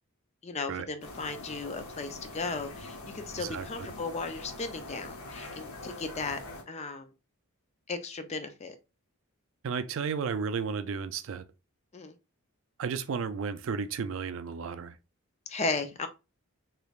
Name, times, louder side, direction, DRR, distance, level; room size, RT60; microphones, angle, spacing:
voice 1, 0.4-7.1 7.9-8.7 11.9-12.1 15.5-16.1, left 3 dB, 30° left, 0.4 m, -36 dB
sound 1, 1.0-6.6, left 2 dB, 75° left, 0.8 m, -44 dB
voice 2, 9.6-11.4 12.8-14.9, right 6 dB, 60° right, 0.3 m, -33 dB
3.2 x 3.0 x 2.3 m
head